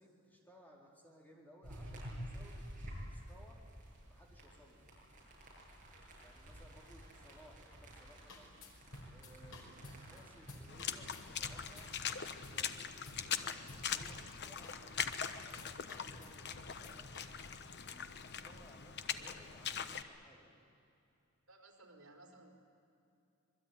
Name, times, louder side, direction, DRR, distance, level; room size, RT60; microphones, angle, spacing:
voice 1, 0.0-3.6 4.1-4.8 6.2-8.5 9.1-17.1 17.7-20.5, equal, 10° left, -1 dB, 4.3 m, -62 dB
sound 1, 1.6-11.9, equal, 40° right, 8.0 m, -51 dB
sound 2, 8.0-8.1 8.3-12.7 12.9-14.2 14.6-15.3 15.6-17.3, left 1 dB, 85° left, 5.0 m, -53 dB
Water / Splash splatter, 10.7-20.0, left 7 dB, 55° left, 1.1 m, -42 dB
voice 2, 21.5-22.5, right 2 dB, 75° right, 2 dB, 4.8 m, -58 dB
26.0 x 22.0 x 9.6 m, 2.7 s
head